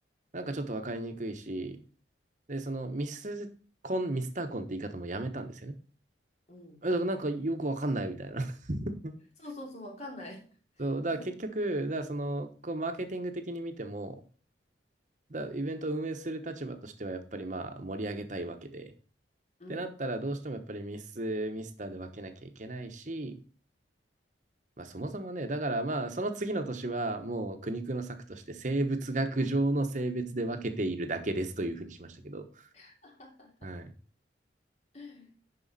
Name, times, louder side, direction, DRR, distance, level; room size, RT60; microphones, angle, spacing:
voice 1, 0.3-1.9 2.5-3.5 3.8-5.8 6.8-9.1 10.8-14.2 15.3-18.9 19.7-23.4 24.8-32.7 33.6-33.9, right 2 dB, 45° right, 7 dB, 1.1 m, -34 dB
voice 2, 6.5-6.9 9.4-10.5 11.2-11.3 19.6-19.9 32.7-33.7 34.9-35.3, left 1 dB, 40° left, -1 dB, 2.9 m, -46 dB
11.0 x 4.9 x 4.2 m, 0.42 s
head